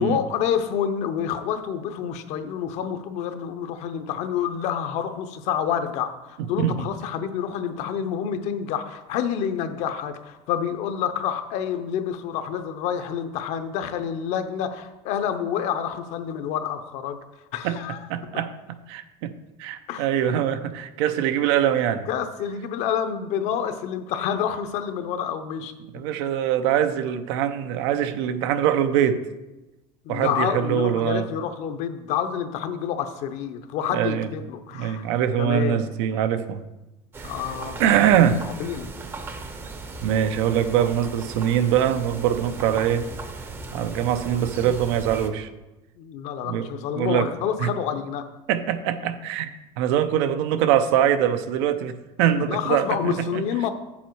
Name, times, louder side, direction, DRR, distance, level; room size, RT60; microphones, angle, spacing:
voice 1, 0.0-17.2 17.5-18.0 19.9-20.1 21.7-21.8 22.1-25.7 30.0-35.1 35.4-35.8 37.2-37.8 38.6-38.9 46.0-48.2 52.3-53.7, left 8 dB, 55° left, 9 dB, 0.8 m, -28 dB
voice 2, 6.4-6.9 17.6-17.8 18.1-19.3 19.6-22.1 25.9-29.3 30.1-31.3 33.9-34.3 34.7-36.6 37.2-37.3 37.8-38.4 40.0-43.1 43.7-45.5 46.4-46.7 46.9-47.3 47.6-47.7 48.5-53.4, right 10 dB, 85° right, 10 dB, 0.7 m, -23 dB
sound 1, 37.1-45.3, right 3 dB, 15° right, 0.6 m, -37 dB
7.3 x 7.2 x 4.6 m, 1.0 s
cardioid pair, 155°, 14 cm